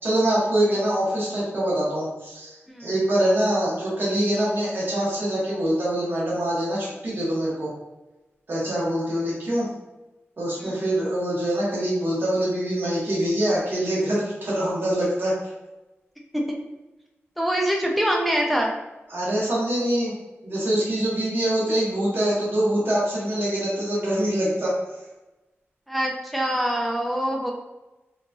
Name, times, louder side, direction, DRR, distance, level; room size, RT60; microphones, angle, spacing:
voice 1, 0.0-7.7 8.5-9.7 10.4-15.3 19.1-20.1 20.4-24.7, right 1 dB, 50° right, -7 dB, 1.1 m, -24 dB
voice 2, 17.4-18.7 25.9-27.5, equal, ahead, -1 dB, 0.5 m, -24 dB
3.8 x 2.6 x 2.3 m, 1.0 s
wide cardioid pair, 105°, 5 cm